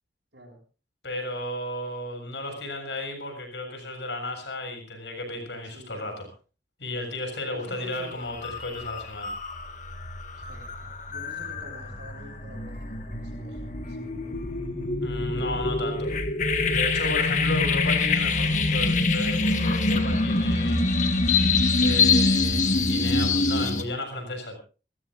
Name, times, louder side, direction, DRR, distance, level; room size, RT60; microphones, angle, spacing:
voice 1, 1.0-6.3 6.8-9.3 15.0-16.1 16.7-20.8 21.8-24.6, left 2 dB, 80° left, 4 dB, 7.2 m, -33 dB
voice 2, 5.7-6.3 7.5-8.1 10.3-14.4, right 1 dB, 80° right, 0 dB, 6.7 m, -48 dB
sound 1, 7.8-8.0 8.4-23.8, left 3 dB, 40° left, 1.7 m, -25 dB
28.5 x 14.5 x 2.6 m, 0.35 s
head